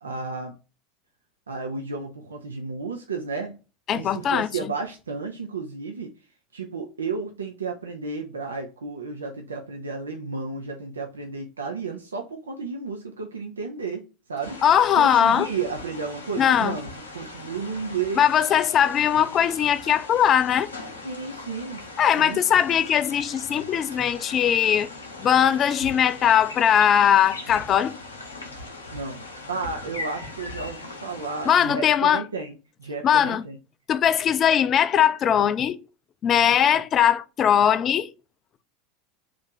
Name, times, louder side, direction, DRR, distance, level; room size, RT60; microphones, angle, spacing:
voice 1, 0.0-0.6 1.5-3.5 3.9-6.1 6.5-14.6 14.9-18.3 21.0-21.8 22.2-22.4 28.9-33.6 36.4-36.6, right 4 dB, 85° right, 0.5 m, -32 dB
voice 2, 3.9-4.5 14.6-15.5 16.4-16.8 18.2-20.7 22.0-24.9 25.2-27.9 31.5-32.2 33.0-33.4 33.9-35.8 36.2-38.1, left 9 dB, 40° left, 0.4 m, -20 dB
sound 1, 14.4-31.7, left 2 dB, 90° left, 0.7 m, -40 dB
3.0 x 2.5 x 3.6 m
hypercardioid pair, 80°, 0 cm